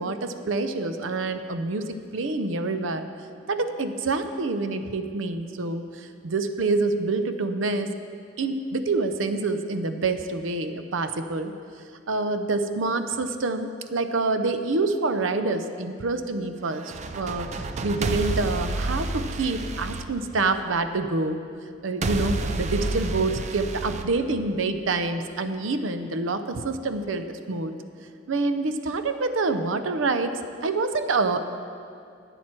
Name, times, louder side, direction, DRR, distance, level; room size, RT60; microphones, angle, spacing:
voice 1, 0.0-3.1 3.5-7.9 8.4-11.5 12.1-21.4 21.8-27.7 28.3-31.4, right 3 dB, 90° right, 9 dB, 0.6 m, -27 dB
sound 1, 16.7-20.9 22.0-24.9, right 3 dB, 35° right, 0.5 m, -30 dB
12.0 x 9.0 x 4.4 m, 2.4 s
head